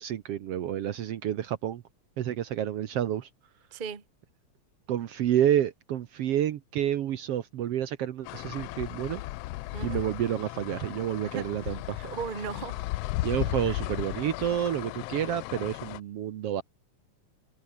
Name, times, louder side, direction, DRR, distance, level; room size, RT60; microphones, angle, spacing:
voice 1, 0.0-1.8 2.2-3.3 4.9-9.2 9.8-12.0 13.2-16.6, right 11 dB, 65° right, 1.8 m, -29 dB
voice 2, 3.7-4.0 9.7-10.0 11.2-12.9 13.7-13.8, right 6 dB, 25° right, 1.2 m, -38 dB
sound 1, 8.2-16.0, left 18 dB, 85° left, 1.4 m, -35 dB
omnidirectional pair, 3.3 m